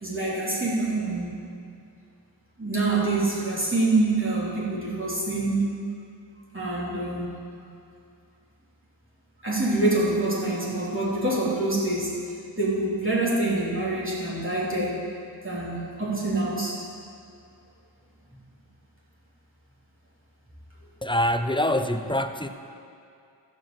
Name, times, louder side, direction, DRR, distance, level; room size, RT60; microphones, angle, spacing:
voice 1, 0.0-1.4 2.6-5.7 6.5-7.3 9.4-12.2 12.6-15.0 15.4-16.7, right 2 dB, 30° right, -8 dB, 3.0 m, -26 dB
voice 2, 21.0-22.5, left 1 dB, 10° left, 8 dB, 0.5 m, -25 dB
14.0 x 5.1 x 7.4 m, 2.4 s
wide cardioid pair, 45°, 44 cm